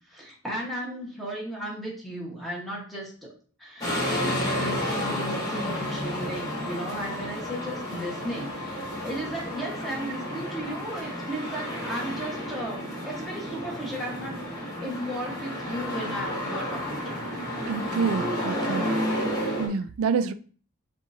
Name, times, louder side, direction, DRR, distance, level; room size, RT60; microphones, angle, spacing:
voice 1, 0.1-3.3 3.6-17.3 17.5-17.7, right 1 dB, ahead, 1.2 m, -35 dB
sound 1, 3.8-19.7, equal, 20° left, 1.3 m, -31 dB
voice 2, 17.7-18.9 19.6-20.3, right 5 dB, 80° right, 0.3 m, -27 dB
7.3 x 2.6 x 2.6 m
head